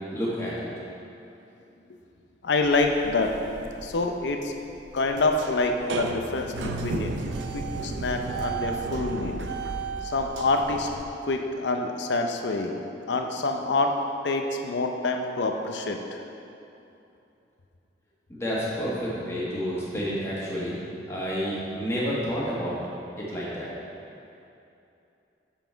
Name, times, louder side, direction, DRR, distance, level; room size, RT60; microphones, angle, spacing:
voice 1, 0.1-0.7 18.3-20.8 21.1-22.7 23.2-23.7, equal, 15° left, -8 dB, 1.5 m, -29 dB
voice 2, 2.4-3.3 3.8-4.5 4.9-7.1 7.5-9.4 10.0-10.9 11.3-12.8 13.1-13.9 14.2-16.2, left 3 dB, 80° left, 3 dB, 0.5 m, -26 dB
sound 1, 2.6-11.0, right 3 dB, 85° right, 0.5 m, -34 dB
7.1 x 5.7 x 4.5 m, 2.8 s
head